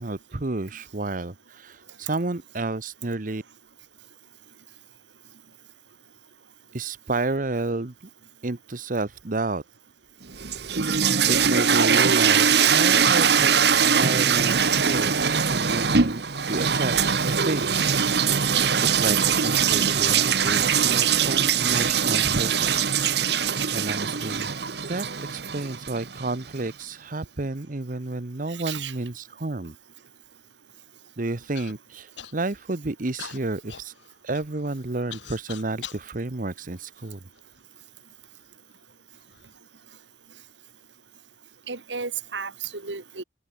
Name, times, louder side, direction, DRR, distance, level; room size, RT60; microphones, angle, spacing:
voice 1, 0.0-3.4 6.7-7.9 8.4-9.6 11.3-13.6 14.0-16.2 16.5-18.4 18.8-23.0 23.3-24.5 24.9-29.7 31.2-33.9 34.2-37.2, right 2 dB, 50° right, 1.0 m, -31 dB
sound 1, 10.3-26.3, right 7 dB, 65° right, 1.4 m, -22 dB
voice 2, 28.5-29.0 41.7-43.2, right 6 dB, 85° right, 2.2 m, -33 dB
Human voice / Cough, 31.5-31.7 32.2-32.7 33.2-36.1 36.8-37.6 38.3-38.4 39.1-39.5, left 9 dB, 90° left, 2.0 m, -42 dB
open air
head